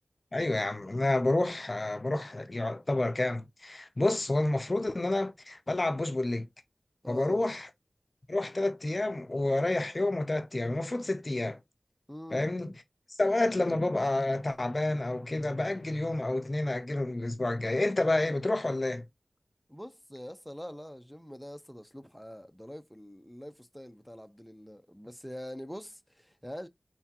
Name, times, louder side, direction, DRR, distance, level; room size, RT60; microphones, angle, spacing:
voice 1, 0.3-6.5 7.1-7.7 8.3-11.6 12.3-12.7 13.1-19.0, left 2 dB, 45° left, 0.6 m, -29 dB
voice 2, 7.0-7.4 12.1-12.5 19.7-26.7, equal, 5° left, 0.8 m, -44 dB
4.5 x 3.5 x 2.9 m
wide cardioid pair, 45°, 0 cm